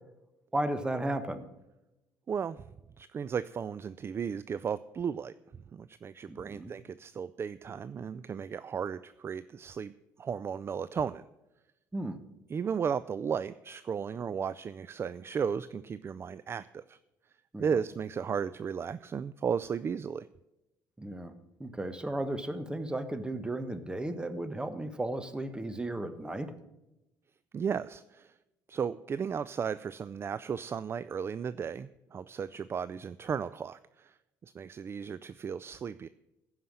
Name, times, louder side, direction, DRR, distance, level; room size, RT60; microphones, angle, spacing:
voice 1, 0.5-1.5 6.3-6.7 11.9-12.2 17.5-17.8 21.0-21.3 21.6-26.5, right 1 dB, 10° right, 10 dB, 1.2 m, -34 dB
voice 2, 2.3-2.6 3.0-5.3 5.7-9.9 10.2-11.3 12.5-17.0 17.6-20.3 27.5-28.3 28.7-34.2 34.4-36.1, right 7 dB, 30° right, 16 dB, 0.4 m, -35 dB
15.0 x 5.6 x 7.6 m, 0.94 s
cardioid pair, 105°, 8 cm